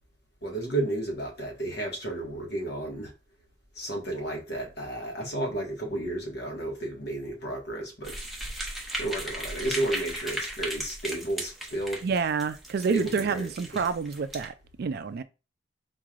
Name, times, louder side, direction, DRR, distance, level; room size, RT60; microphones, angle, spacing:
voice 1, 0.4-3.1 3.7-8.2 9.0-12.1 12.9-13.9, right 1 dB, 60° left, 1.4 m, -32 dB
sound 1, 8.0-14.5, right 1 dB, ahead, 0.8 m, -36 dB
voice 2, 12.0-15.2, right 5 dB, 55° right, 0.3 m, -28 dB
4.4 x 3.2 x 2.4 m
head